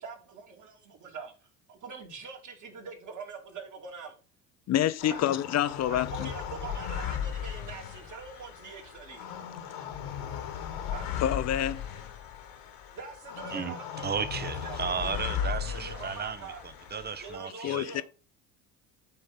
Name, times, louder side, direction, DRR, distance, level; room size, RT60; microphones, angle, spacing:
voice 1, 0.0-4.2 5.0-5.2 5.8-9.3 10.9-11.2 12.9-14.2 14.6-16.6 17.2-18.0, right 5 dB, 45° right, 2.9 m, -44 dB
voice 2, 4.7-6.3 11.2-11.8 17.6-18.0, left 11 dB, 40° left, 0.7 m, -27 dB
sound 1, 5.0-17.4, left 8 dB, 70° left, 1.7 m, -37 dB
voice 3, 14.0-17.9, right 6 dB, 25° right, 0.8 m, -34 dB
8.7 x 3.2 x 5.3 m
hypercardioid pair, 80°, 41 cm